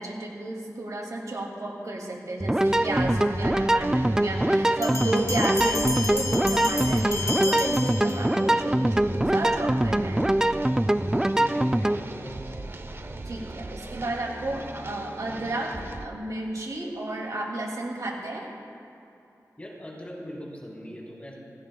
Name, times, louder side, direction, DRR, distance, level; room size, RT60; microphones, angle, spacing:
voice 1, 0.0-10.2 13.3-15.7 16.0-18.5, right 2 dB, 70° right, 0 dB, 2.5 m, -32 dB
sound 1, 2.4-12.0, right 1 dB, 10° right, 0.3 m, -23 dB
sound 2, 2.6-16.1, right 2 dB, 40° right, 0.7 m, -39 dB
sound 3, 4.8-8.6, left 3 dB, 50° left, 1.1 m, -32 dB
voice 2, 11.3-12.5 14.0-14.3 19.6-21.4, equal, 20° left, -4 dB, 3.7 m, -41 dB
27.5 x 17.0 x 2.3 m, 2.8 s
wide cardioid pair, 100°, 6 cm